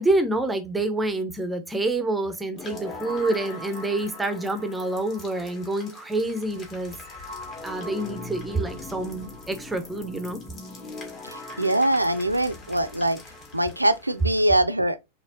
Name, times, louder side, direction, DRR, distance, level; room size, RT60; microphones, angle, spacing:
voice 1, 0.0-7.0 7.6-10.4, right 2 dB, 10° right, 0.6 m, -27 dB
sound 1, 2.5-14.4, left 2 dB, 30° left, 1.5 m, -40 dB
voice 2, 11.3-13.2 13.5-15.0, right 1 dB, 85° right, 0.3 m, -23 dB
4.1 x 3.3 x 2.5 m
figure-of-eight pair, 90°, 0 cm